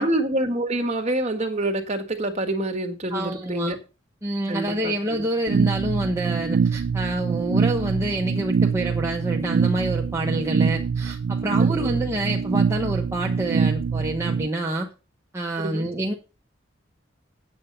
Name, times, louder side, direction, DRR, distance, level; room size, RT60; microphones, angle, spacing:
voice 1, 0.0-3.8 4.5-5.3 11.6-12.0 15.6-15.9, right 1 dB, 35° right, 1.7 m, -27 dB
voice 2, 3.1-3.8 4.2-14.9 15.3-16.1, right 1 dB, 15° right, 1.1 m, -27 dB
sound 1, 5.5-14.5, right 6 dB, 80° right, 0.4 m, -24 dB
8.6 x 8.2 x 5.5 m
head